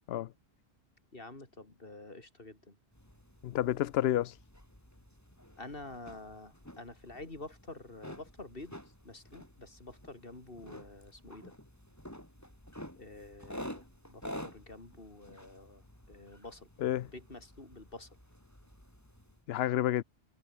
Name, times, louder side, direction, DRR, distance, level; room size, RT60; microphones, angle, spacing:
voice 1, 1.1-2.8 5.6-8.7 9.0-11.5 13.0-16.7 17.1-18.2, left 2 dB, 60° left, 3.9 m, -48 dB
sound 1, 2.9-19.4, equal, 15° left, 6.9 m, -50 dB
voice 2, 3.4-4.4 16.8-17.1 19.5-20.0, left 12 dB, 75° left, 0.8 m, -30 dB
omnidirectional pair, 1.1 m